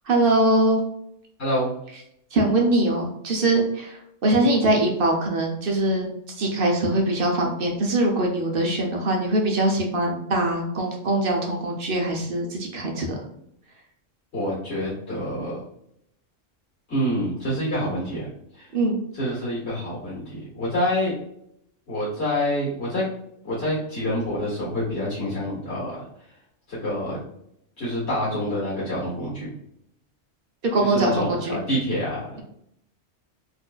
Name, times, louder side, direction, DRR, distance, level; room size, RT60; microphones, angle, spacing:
voice 1, 0.0-0.8 2.3-13.3 18.7-19.0 30.6-31.6, right 1 dB, 55° right, 0 dB, 0.8 m, -22 dB
voice 2, 1.4-1.7 14.3-15.6 16.9-18.2 18.6-18.7 19.2-21.1 21.9-23.0 23.4-26.0 26.7-27.2 27.8-29.5 30.9-32.4, equal, 60° left, -8 dB, 1.8 m, -27 dB
4.3 x 2.6 x 2.3 m, 0.75 s
omnidirectional pair, 1.3 m